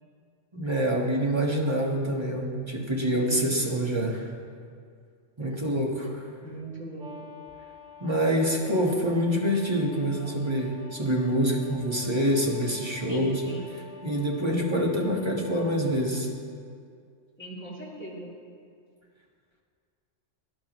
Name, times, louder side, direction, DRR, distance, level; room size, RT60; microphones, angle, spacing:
voice 1, 0.5-4.3 5.4-6.2 8.0-13.4 14.0-16.3, equal, 25° right, -2 dB, 1.4 m, -26 dB
voice 2, 3.1-3.6 6.4-7.3 13.1-13.7 17.4-18.3, right 1 dB, 10° left, -7 dB, 2.9 m, -40 dB
sound 1, 7.0-15.9, left 5 dB, 85° right, 1.8 m, -48 dB
18.0 x 11.0 x 3.1 m, 2.2 s
omnidirectional pair, 1.3 m